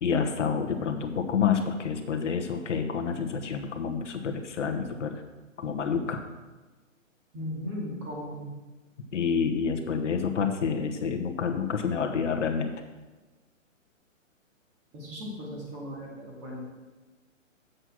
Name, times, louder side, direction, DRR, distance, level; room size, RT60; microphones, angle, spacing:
voice 1, 0.0-5.1 5.6-6.2 9.1-12.7, left 6 dB, 60° left, 5 dB, 1.1 m, -28 dB
voice 2, 7.3-8.5 14.9-16.6, equal, 25° right, -4 dB, 2.5 m, -37 dB
7.8 x 6.3 x 6.0 m, 1.2 s
hypercardioid pair, 155°, 40 cm